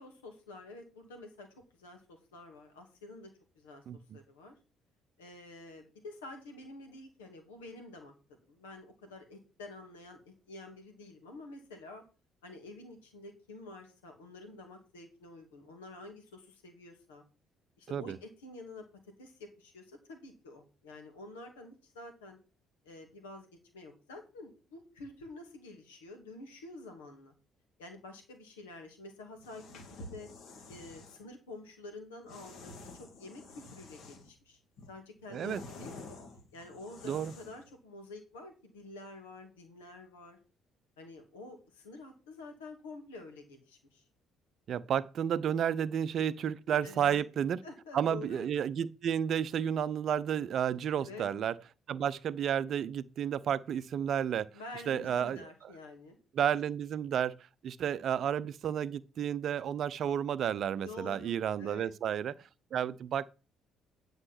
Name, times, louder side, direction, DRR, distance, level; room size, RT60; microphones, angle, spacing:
voice 1, 0.0-3.3 3.6-4.6 5.2-10.2 10.5-12.0 12.4-17.2 17.8-18.9 19.2-22.4 22.8-23.5 23.7-27.3 27.8-30.3 30.7-34.6 34.9-36.2 36.5-40.4 41.0-44.0 46.8-47.2 47.6-48.4 50.9-51.3 54.5-56.2 60.7-61.9, left 2 dB, 75° left, 2.4 m, -49 dB
voice 2, 3.9-4.2 17.9-18.2 35.3-35.6 37.0-37.3 44.7-47.6 47.9-51.5 51.9-54.5 54.9-55.5 56.4-57.4 57.6-62.3 62.7-63.3, right 9 dB, 50° right, 0.6 m, -31 dB
sound 1, 29.3-31.2 32.3-34.4 34.8-37.7, left 2 dB, 55° left, 2.2 m, -49 dB
9.8 x 5.2 x 5.9 m
figure-of-eight pair, 45°, 0 cm